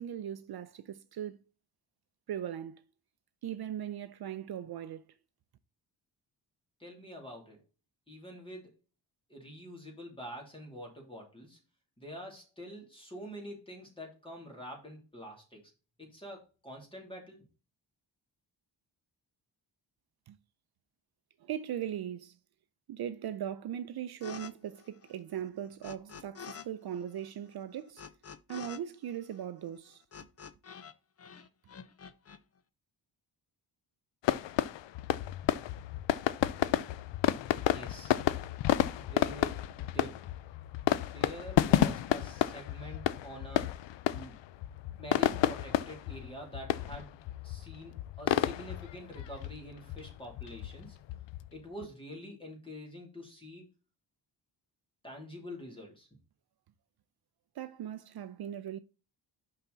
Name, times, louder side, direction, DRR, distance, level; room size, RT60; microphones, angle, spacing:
voice 1, 0.0-1.4 2.3-2.8 3.4-5.1 20.3-20.4 21.4-22.4 22.9-28.1 28.5-30.0 57.6-58.8, right 10 dB, 60° right, 0.5 m, -39 dB
voice 2, 6.8-7.6 8.1-8.7 9.3-11.6 12.0-15.7 16.0-17.4 37.7-38.1 39.0-40.3 41.1-43.8 44.0-44.4 45.0-47.2 47.4-51.0 51.5-53.7 55.0-56.1, equal, 10° left, 2.7 m, -46 dB
sound 1, 24.2-24.5 24.8-26.7 26.9-30.9 31.2-32.4, left 7 dB, 35° left, 0.5 m, -48 dB
sound 2, 34.2-51.8, left 12 dB, 80° left, 0.5 m, -31 dB
5.7 x 5.7 x 3.9 m
wide cardioid pair, 140°, 43 cm